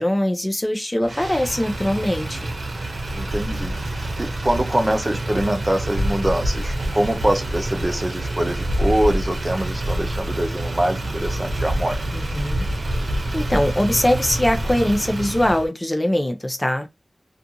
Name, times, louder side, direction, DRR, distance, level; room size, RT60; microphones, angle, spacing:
voice 1, 0.0-2.5 12.1-12.7 13.3-16.9, left 1 dB, 25° left, 0.6 m, -22 dB
Motor vehicle (road), 1.0-15.7, right 1 dB, 85° right, 0.7 m, -26 dB
voice 2, 3.1-12.0, right 1 dB, 30° right, 0.5 m, -24 dB
2.5 x 2.4 x 2.7 m
wide cardioid pair, 60°, 0 cm